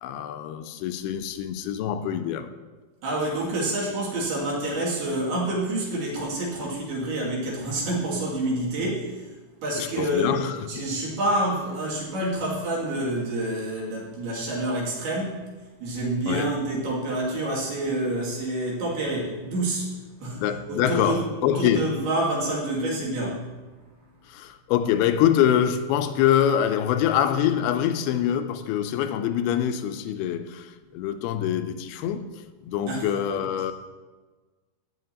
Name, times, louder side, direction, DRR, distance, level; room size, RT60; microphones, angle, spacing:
voice 1, 0.0-2.5 9.8-10.8 16.3-16.6 20.3-21.9 24.3-32.3 32.6-33.7, left 10 dB, 85° left, 2.5 m, -25 dB
voice 2, 3.0-9.3 9.6-10.4 10.7-15.5 15.8-19.9 20.2-20.4 20.7-23.4 32.9-33.1, right 1 dB, 80° right, 4.3 m, -28 dB
13.0 x 10.0 x 2.8 m
omnidirectional pair, 4.6 m